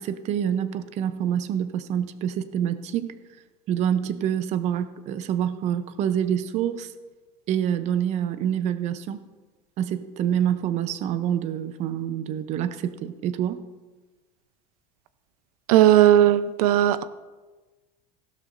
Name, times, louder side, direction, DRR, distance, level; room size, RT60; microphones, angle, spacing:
voice 1, 0.0-3.1 3.7-6.9 7.5-9.2 9.8-13.6, right 9 dB, 40° right, 12 dB, 0.7 m, -26 dB
voice 2, 15.7-17.0, right 12 dB, 90° right, 13 dB, 0.7 m, -17 dB
16.0 x 12.0 x 2.6 m, 1.3 s
supercardioid pair, 155°, 18 cm